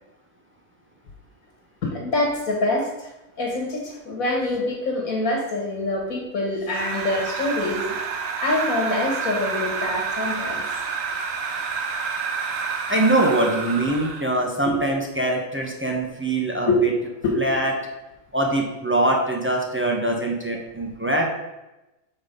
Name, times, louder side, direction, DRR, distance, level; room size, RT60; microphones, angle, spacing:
voice 1, 1.8-3.1 3.4-7.8 8.4-10.6 14.7-14.8 16.7-16.8 17.2-17.3, left 2 dB, 90° left, -1 dB, 1.8 m, -25 dB
sound 1, 6.7-14.3, right 5 dB, 70° right, 1.2 m, -29 dB
voice 2, 12.9-16.9 17.4-17.7 18.3-21.3, right 1 dB, 10° right, 0 dB, 0.8 m, -23 dB
7.0 x 4.2 x 5.1 m, 0.99 s
omnidirectional pair, 1.4 m